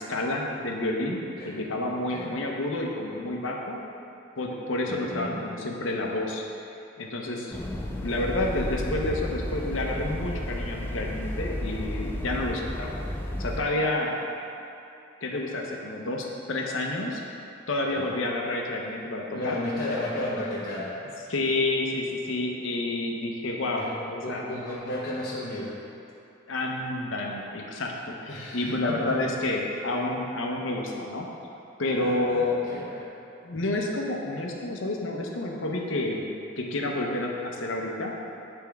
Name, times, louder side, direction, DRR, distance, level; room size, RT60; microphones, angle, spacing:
voice 1, 0.0-3.8 4.4-6.4 7.0-7.6 8.0-12.9 13.4-14.2 15.2-17.2 17.7-19.6 21.3-24.5 26.5-31.3 31.8-32.6 33.4-36.2 36.6-38.1, left 2 dB, 75° left, 0 dB, 0.7 m, -29 dB
voice 2, 4.9-5.4 18.0-18.1 19.3-20.9 23.8-25.8 28.3-29.3 32.0-33.1, left 1 dB, 50° left, -8 dB, 0.9 m, -34 dB
sound 1, 7.5-13.6, left 1 dB, 10° left, 0.3 m, -32 dB
9.6 x 3.5 x 3.5 m, 2.7 s
head